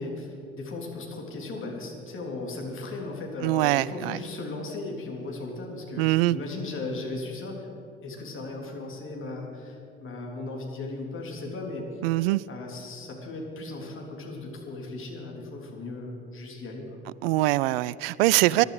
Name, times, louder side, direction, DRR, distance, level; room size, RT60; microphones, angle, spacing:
voice 1, 0.0-7.7 8.0-11.9 12.5-17.0 18.5-18.7, left 2 dB, 40° left, 0 dB, 3.4 m, -37 dB
voice 2, 3.4-4.2 6.0-6.4 12.0-12.4 17.2-18.6, right 18 dB, 70° right, 21 dB, 0.5 m, -23 dB
21.0 x 11.5 x 5.0 m, 2.6 s
figure-of-eight pair, 60°, 30 cm